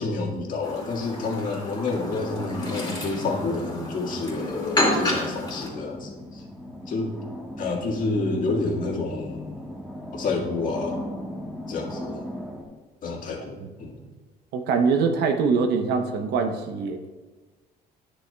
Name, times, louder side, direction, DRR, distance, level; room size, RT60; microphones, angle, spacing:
voice 1, 0.0-6.4 6.9-7.1 7.6-9.7 10.1-11.1 11.7-12.3 13.0-14.0, left 3 dB, 50° left, 0 dB, 1.8 m, -29 dB
Chirp tweet, 0.6-5.7, left 1 dB, 25° left, 2.3 m, -30 dB
sound 1, 1.9-12.6, left 1 dB, 5° right, 1.4 m, -37 dB
voice 2, 14.5-17.0, right 5 dB, 75° right, 5 dB, 0.8 m, -23 dB
10.0 x 7.6 x 2.3 m, 1.3 s
cardioid pair, 110°, 17 cm